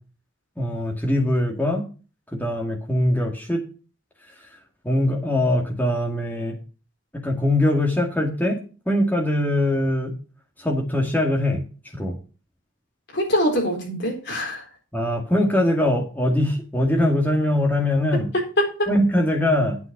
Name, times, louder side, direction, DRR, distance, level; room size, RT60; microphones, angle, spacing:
voice 1, 0.6-1.8 2.3-3.6 4.8-6.6 7.1-10.1 10.6-11.6 11.9-12.2 14.9-18.3 18.9-19.8, left 1 dB, 10° left, 0 dB, 2.1 m, -22 dB
voice 2, 13.1-14.6 18.3-18.9, equal, 60° left, 0 dB, 4.2 m, -23 dB
9.1 x 7.6 x 5.9 m, 0.36 s
head